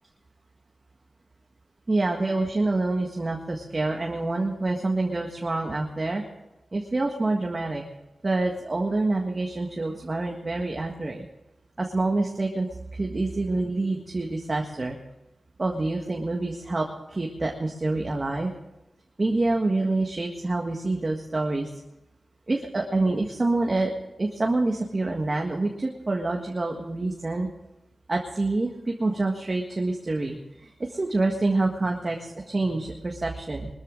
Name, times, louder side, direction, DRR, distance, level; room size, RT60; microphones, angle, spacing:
voice 1, 1.9-6.2 6.7-7.8 8.2-11.2 11.8-15.0 15.6-18.5 19.2-21.7 22.5-23.9 24.2-27.5 28.1-30.4 30.6-33.7, right 2 dB, 30° right, 1 dB, 1.7 m, -27 dB
22.0 x 13.5 x 3.9 m, 0.96 s
wide cardioid pair, 115°, 0 cm